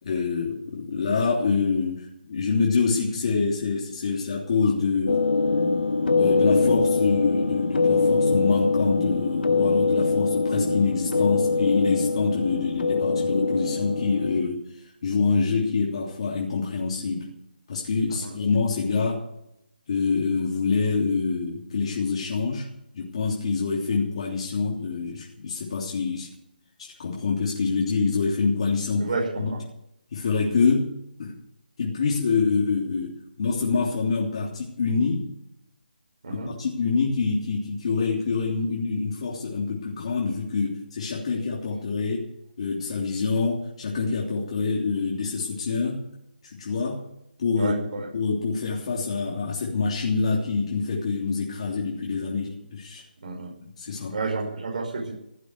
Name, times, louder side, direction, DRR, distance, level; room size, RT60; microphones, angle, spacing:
voice 1, 0.0-5.2 6.2-17.3 17.7-19.2 19.9-22.7 22.9-26.3 26.8-29.5 30.1-30.9 31.2-31.3 31.8-35.3 36.3-42.3 42.6-46.0 46.5-47.0 47.4-47.7 48.1-53.0 53.6-54.2, left 4 dB, 40° left, -3 dB, 3.3 m, -26 dB
sound 1, 5.1-14.4, left 4 dB, 85° left, 1.8 m, -23 dB
voice 2, 29.1-29.6 36.2-36.5 47.6-48.1 53.2-53.5 54.1-55.1, right 3 dB, 50° right, -1 dB, 5.5 m, -30 dB
16.5 x 8.3 x 9.5 m, 0.80 s
hypercardioid pair, 170°, 5 cm